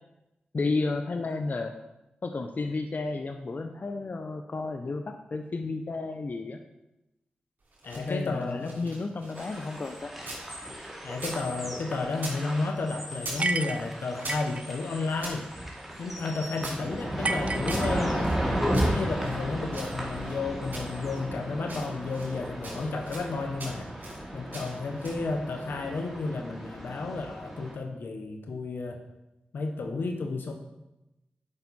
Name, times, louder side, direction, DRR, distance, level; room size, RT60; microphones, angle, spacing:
voice 1, 0.5-1.7 2.2-6.6 8.0-10.1 17.7-17.9, left 3 dB, 55° left, 6 dB, 0.6 m, -32 dB
sound 1, 7.6-10.5 10.8-12.4 12.7-13.5 13.8-15.4 15.9-18.4 18.7-20.4 20.7-21.3 21.6-22.4 22.6-23.3 23.6-24.2 24.5-25.3, right 2 dB, 65° right, 3.0 m, -43 dB
voice 2, 7.8-8.9 11.0-15.5 16.0-18.3 18.8-23.9 24.3-29.0 29.5-30.5, left 3 dB, 85° left, 5 dB, 1.0 m, -32 dB
sound 2, 9.3-27.7, equal, 5° right, 2.6 m, -34 dB
sound 3, 13.4-14.6 17.2-18.4, right 3 dB, 40° right, 0.4 m, -31 dB
8.7 x 5.6 x 4.1 m, 0.93 s
cardioid pair, 40°, 3 cm